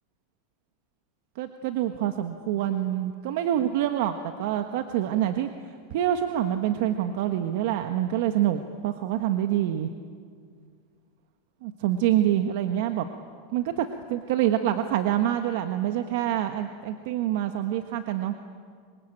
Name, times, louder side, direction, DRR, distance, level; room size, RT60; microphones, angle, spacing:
voice 1, 1.3-5.5 5.9-9.9 11.6-13.1 13.5-18.3, right 11 dB, 65° right, 7 dB, 1.4 m, -26 dB
25.5 x 24.5 x 9.0 m, 2.1 s
supercardioid pair, 140°, 0 cm